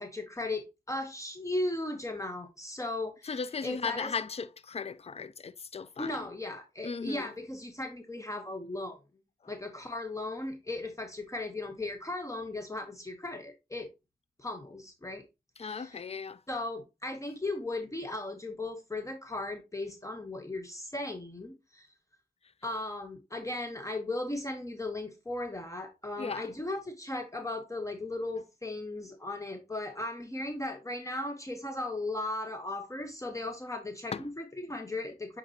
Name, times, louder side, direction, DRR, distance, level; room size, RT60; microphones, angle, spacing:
voice 1, 0.0-3.3 3.6-4.1 6.0-9.0 9.5-13.9 14.4-15.2 15.6-16.0 16.5-21.9 22.6-35.4, left 2 dB, 20° left, 1.0 m, -37 dB
voice 2, 3.2-6.2 6.8-7.3 9.4-9.5 15.6-16.4 22.4-22.5 26.2-26.5 34.1-34.3, left 5 dB, 40° left, 0.4 m, -37 dB
8.5 x 4.0 x 2.8 m
cardioid pair, 60°, 16 cm